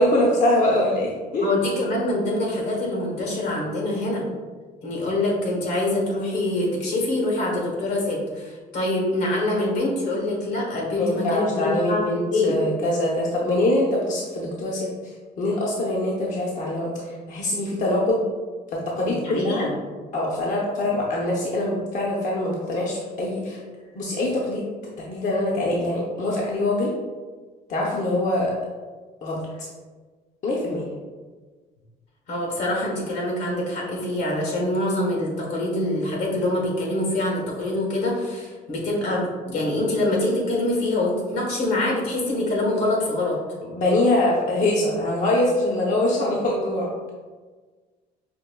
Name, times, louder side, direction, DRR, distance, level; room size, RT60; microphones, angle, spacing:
voice 1, 0.0-1.5 11.0-18.2 18.7-19.7 20.1-23.6 23.9-24.7 25.0-26.9 27.7-28.5 29.2-29.4 30.4-30.9 43.7-46.9, left 1 dB, 50° left, -3 dB, 0.6 m, -23 dB
voice 2, 1.4-4.2 4.8-12.6 19.1-19.7 32.3-43.4, left 1 dB, 80° left, -2 dB, 1.3 m, -25 dB
5.1 x 2.6 x 2.2 m, 1.4 s
cardioid pair, 110°, 17 cm